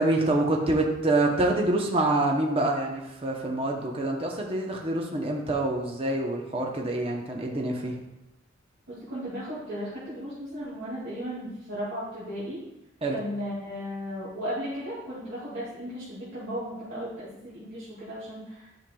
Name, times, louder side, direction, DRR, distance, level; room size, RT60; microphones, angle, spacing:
voice 1, 0.0-7.9 13.0-13.2, right 2 dB, 30° right, 0 dB, 0.8 m, -26 dB
voice 2, 8.9-12.6 13.1-18.9, equal, 65° right, -10 dB, 2.4 m, -35 dB
10.5 x 5.7 x 2.3 m, 0.90 s
head